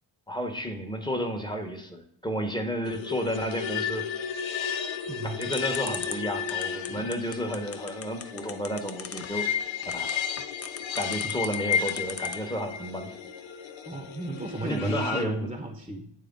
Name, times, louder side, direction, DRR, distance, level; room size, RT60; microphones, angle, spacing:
voice 1, 0.3-4.1 5.2-9.5 9.9-10.1 11.0-13.1 14.6-15.5, equal, 10° left, 4 dB, 1.1 m, -32 dB
sound 1, 2.8-15.3, left 7 dB, 65° left, 0.7 m, -33 dB
voice 2, 5.1-5.5 6.9-7.1 11.2-11.4 12.4-12.5 13.9-16.1, right 2 dB, 10° right, 3 dB, 1.0 m, -35 dB
sound 2, 5.4-12.6, left 6 dB, 30° left, 0.5 m, -38 dB
8.4 x 3.3 x 3.8 m, 0.69 s
cardioid pair, 45°, 49 cm